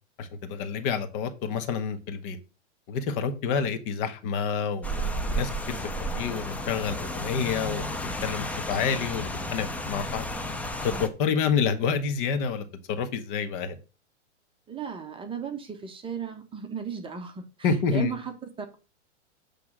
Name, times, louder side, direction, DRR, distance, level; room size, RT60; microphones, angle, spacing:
voice 1, 0.2-2.4 2.9-5.8 6.1-10.2 10.8-13.8 17.6-18.1, left 6 dB, 45° left, 1.4 m, -28 dB
Rain, 4.8-11.1, equal, 5° left, 0.5 m, -32 dB
voice 2, 14.7-18.7, right 7 dB, 15° right, 1.1 m, -36 dB
8.5 x 3.4 x 6.1 m
hypercardioid pair, 130°, 36 cm